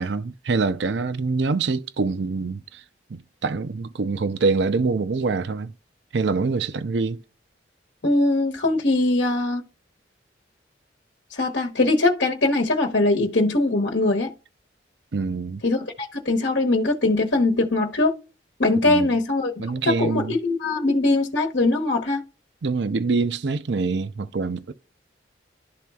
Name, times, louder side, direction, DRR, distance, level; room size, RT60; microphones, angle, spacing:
voice 1, 0.0-2.8 3.1-5.7 6.1-7.2 15.1-15.6 18.8-19.1 19.6-20.3 22.6-24.7, right 4 dB, 70° right, 0.5 m, -25 dB
voice 2, 8.0-9.6 11.3-14.3 15.6-18.1 18.6-22.2, left 2 dB, 75° left, 1.0 m, -21 dB
12.5 x 4.2 x 2.3 m
head